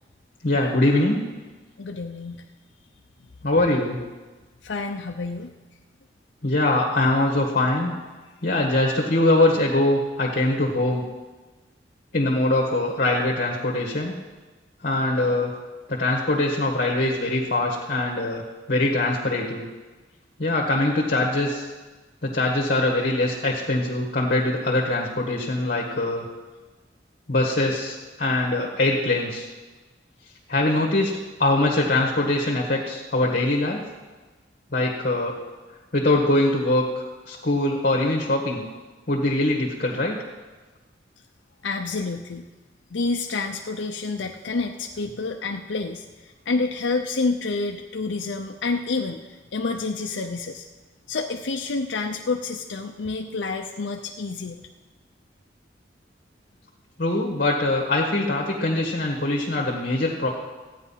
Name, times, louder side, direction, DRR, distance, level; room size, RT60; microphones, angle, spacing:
voice 1, 0.4-1.2 3.4-4.0 6.4-7.9 8.4-11.0 12.1-14.1 14.8-15.5 15.9-18.4 18.7-19.6 20.4-21.7 22.2-26.3 27.3-29.5 30.5-33.8 34.7-35.4 35.9-36.8 37.3-38.6 39.1-40.1 57.0-60.3, left 2 dB, 50° left, -1 dB, 1.6 m, -22 dB
voice 2, 1.8-2.5 4.6-5.5 41.6-42.5 42.9-49.2 49.5-50.7 51.1-54.6, left 3 dB, 75° left, 3 dB, 0.6 m, -28 dB
14.5 x 9.4 x 5.7 m, 1.3 s
head